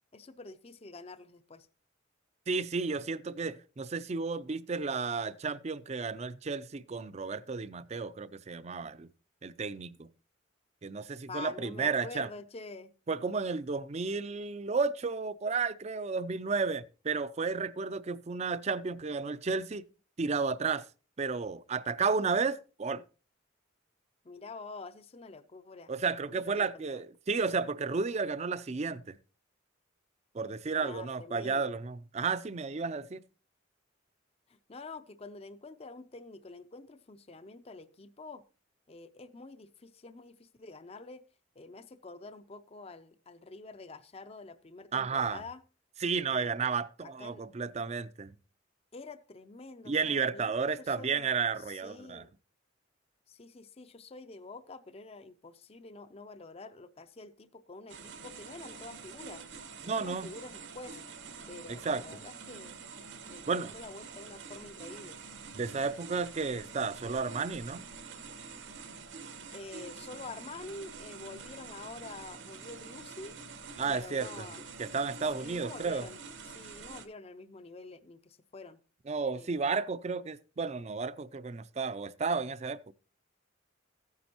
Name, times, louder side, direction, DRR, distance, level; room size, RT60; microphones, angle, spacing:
voice 1, 0.1-1.7 11.3-12.9 24.2-25.9 26.3-27.0 30.8-31.7 34.5-38.4 38.9-41.3 41.6-45.6 46.3-46.7 47.0-47.4 48.9-51.3 51.6-52.3 53.3-59.5 59.8-61.0 61.5-62.8 63.3-65.2 69.5-73.4 73.9-74.7 75.3-78.8 79.3-79.6, left 3 dB, 30° left, 0.5 m, -47 dB
voice 2, 2.5-9.1 9.4-10.1 10.8-12.3 13.1-19.8 20.2-20.9 21.2-23.0 25.9-29.2 30.3-33.2 44.9-45.4 46.0-48.3 49.9-52.2 59.8-60.3 61.7-62.2 63.5-63.7 65.5-67.8 73.8-74.5 74.8-76.1 79.1-82.9, right 4 dB, 35° right, 0.4 m, -32 dB
sound 1, 57.9-77.1, right 5 dB, 70° right, 1.3 m, -47 dB
14.5 x 9.5 x 2.9 m
head